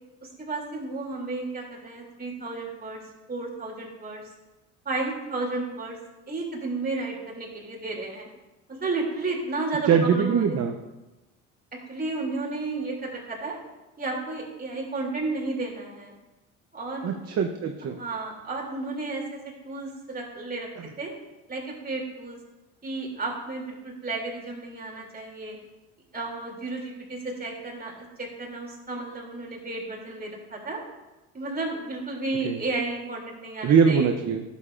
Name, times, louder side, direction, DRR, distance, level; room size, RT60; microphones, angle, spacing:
voice 1, 0.2-3.0 3.3-4.2 4.8-6.0 6.3-8.3 8.7-10.6 11.9-13.6 14.0-16.1 16.7-17.2 18.0-19.4 19.6-20.7 21.0-21.1 21.5-22.4 22.8-25.6 26.1-30.8 31.3-34.1, right 3 dB, 25° right, -2 dB, 2.8 m, -32 dB
voice 2, 9.9-10.7 17.0-18.0 32.4-32.6 33.6-34.4, right 6 dB, 45° right, 5 dB, 0.7 m, -22 dB
11.0 x 7.1 x 2.5 m, 1.1 s
supercardioid pair, 85°, 35 cm